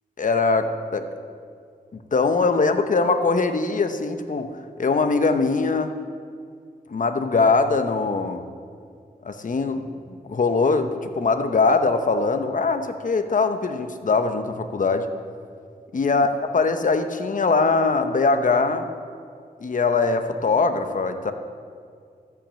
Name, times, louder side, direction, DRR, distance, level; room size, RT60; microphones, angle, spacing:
voice 1, 0.2-1.1 1.9-4.5 4.8-5.9 6.9-8.4 9.2-15.1 15.9-18.9 19.6-21.3, left 4 dB, 55° left, 8 dB, 0.9 m, -22 dB
14.0 x 5.9 x 7.5 m, 2.2 s
wide cardioid pair, 75°, 16 cm